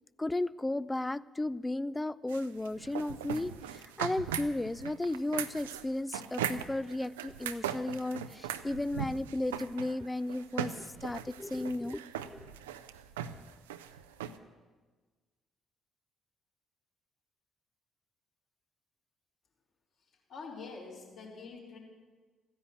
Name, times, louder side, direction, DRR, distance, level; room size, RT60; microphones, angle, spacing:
voice 1, 0.2-10.7 11.0-12.0, left 2 dB, 15° left, 20 dB, 0.4 m, -34 dB
sound 1, 2.3-14.4, right 9 dB, 80° right, 0.5 m, -39 dB
voice 2, 20.3-21.8, left 4 dB, 55° left, -3 dB, 4.5 m, -45 dB
15.0 x 10.0 x 8.3 m, 1.3 s
figure-of-eight pair, 45°, 0 cm